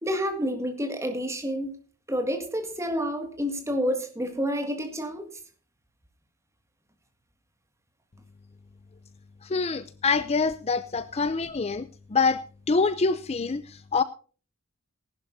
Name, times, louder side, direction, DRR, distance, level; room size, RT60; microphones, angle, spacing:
voice 1, 0.0-1.8 2.1-5.3, equal, 15° right, 2.0 m, -29 dB
voice 2, 9.4-14.0, left 4 dB, 30° left, 0.4 m, -26 dB
19.0 x 11.5 x 2.7 m
head